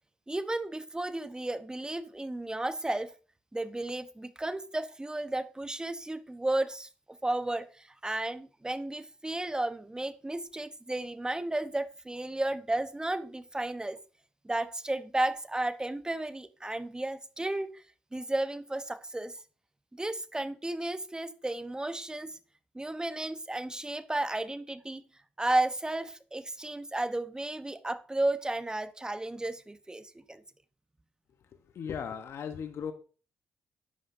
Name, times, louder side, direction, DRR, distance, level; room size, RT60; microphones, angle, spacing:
voice 1, 0.3-3.1 3.5-6.9 7.2-14.0 14.4-17.8 18.1-19.3 19.9-22.3 22.7-25.1 25.4-30.4, right 2 dB, 15° right, 1.0 m, -33 dB
voice 2, 31.5-32.9, left 7 dB, 60° left, 1.0 m, -37 dB
13.0 x 9.8 x 2.7 m
hypercardioid pair, 50°, 5 cm